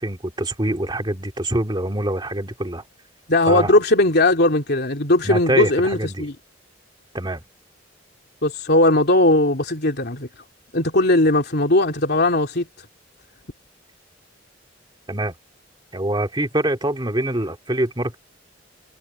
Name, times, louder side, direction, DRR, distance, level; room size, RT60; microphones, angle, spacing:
voice 1, 0.0-2.8 3.5-3.8 5.2-6.3 7.1-7.4 15.1-15.3 15.9-18.2, right 1 dB, 25° right, 2.4 m, -24 dB
voice 2, 3.3-6.3 8.4-10.3 10.7-12.7, left 2 dB, 60° left, 3.1 m, -18 dB
head